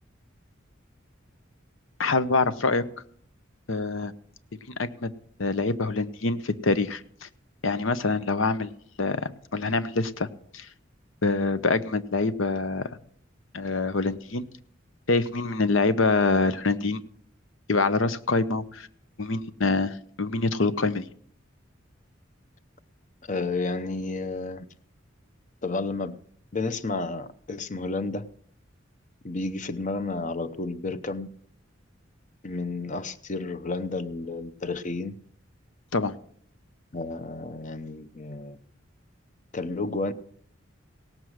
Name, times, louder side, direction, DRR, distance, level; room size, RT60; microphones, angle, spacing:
voice 1, 2.0-2.8 3.7-4.1 4.5-5.1 5.4-7.3 7.6-8.7 9.0-10.3 10.5-10.7 11.2-12.9 13.5-14.5 15.1-17.0 17.7-18.9 19.2-21.0 35.9-36.1, left 3 dB, 80° left, 0.8 m, -25 dB
voice 2, 23.3-24.7 25.6-26.2 26.5-28.3 29.2-31.3 32.4-35.2 36.9-38.6 39.5-40.1, left 3 dB, 40° left, 0.7 m, -31 dB
17.5 x 7.6 x 6.4 m
head